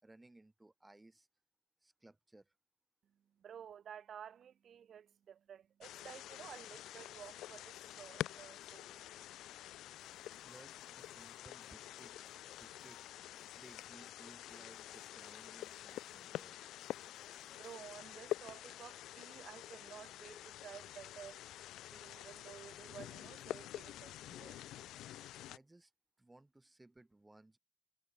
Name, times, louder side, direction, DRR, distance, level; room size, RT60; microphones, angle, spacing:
voice 1, 0.0-1.3 1.8-2.5 10.1-12.2 12.6-13.1 13.5-16.6 25.5-25.9 26.2-27.6, right 2 dB, 15° right, 4.5 m, -61 dB
voice 2, 3.4-9.0 17.5-21.4 21.9-24.6, right 8 dB, 60° right, 0.7 m, -53 dB
sound 1, 5.8-25.6, left 14 dB, 85° left, 0.8 m, -48 dB
sound 2, 9.9-18.2, left 9 dB, 65° left, 2.0 m, -67 dB
cardioid pair, 90°, 0 cm